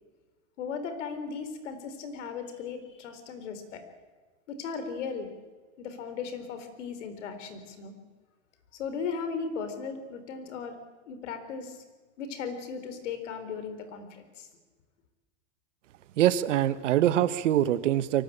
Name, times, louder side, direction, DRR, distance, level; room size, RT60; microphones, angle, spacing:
voice 1, 0.6-3.8 4.5-5.3 5.8-7.9 8.7-10.8 11.1-11.8 12.2-14.5, left 5 dB, 80° left, 9 dB, 4.3 m, -37 dB
voice 2, 16.2-18.2, right 12 dB, 90° right, 13 dB, 1.5 m, -24 dB
23.5 x 19.0 x 8.9 m, 1.3 s
supercardioid pair, 165°, 36 cm